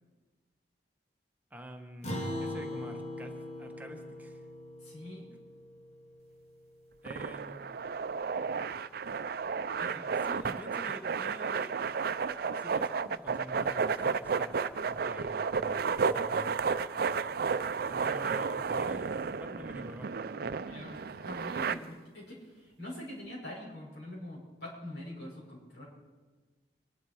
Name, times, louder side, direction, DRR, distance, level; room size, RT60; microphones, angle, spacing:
voice 1, 1.5-4.4 5.3-5.4 7.0-7.8 10.2-11.8 12.6-16.5 17.9-20.4, right 1 dB, 10° right, 3 dB, 1.3 m, -47 dB
Acoustic guitar, 2.0-6.7, left 1 dB, 40° left, 2.4 m, -41 dB
voice 2, 4.8-5.3 9.8-10.0 17.4-17.6 20.7-25.9, left 1 dB, 70° left, -4 dB, 6.1 m, -44 dB
sound 1, 7.1-21.8, right 5 dB, 60° right, 0.5 m, -32 dB
24.5 x 11.0 x 4.8 m, 1.3 s
head